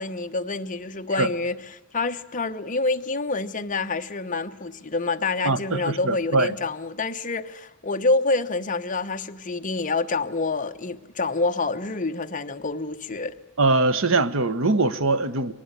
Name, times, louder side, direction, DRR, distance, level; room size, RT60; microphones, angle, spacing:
voice 1, 0.0-1.6 1.9-13.4, left 3 dB, 40° left, 1.1 m, -27 dB
voice 2, 5.4-6.6 13.6-15.5, right 3 dB, 65° right, 1.2 m, -22 dB
24.0 x 19.0 x 9.7 m
head